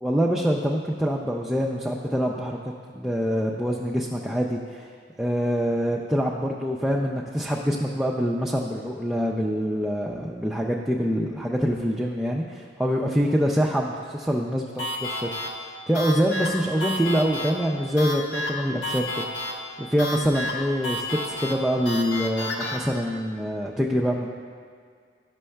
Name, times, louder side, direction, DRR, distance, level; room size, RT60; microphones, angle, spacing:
voice 1, 0.0-2.6 2.9-4.9 5.2-15.3 15.9-19.3 19.8-24.3, equal, ahead, -3 dB, 0.3 m, -25 dB
sound 1, 14.8-22.8, left 1 dB, 70° left, 0.9 m, -32 dB
11.0 x 6.2 x 2.2 m, 2.1 s
head